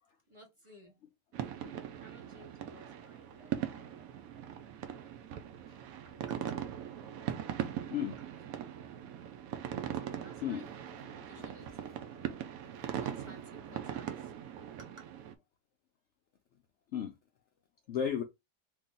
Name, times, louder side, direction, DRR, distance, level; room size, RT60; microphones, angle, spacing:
voice 1, 0.3-0.9 2.0-4.0 6.2-6.6 10.2-10.8 11.2-11.8 12.8-14.3 14.8-15.0, right 1 dB, 20° right, 0.9 m, -56 dB
sound 1, 1.3-15.3, right 10 dB, 70° right, 0.9 m, -40 dB
voice 2, 10.4-11.5 11.9-12.0 12.8-12.9 16.9-17.1 17.9-18.2, left 8 dB, 85° left, 0.6 m, -37 dB
2.9 x 2.8 x 3.7 m
omnidirectional pair, 1.8 m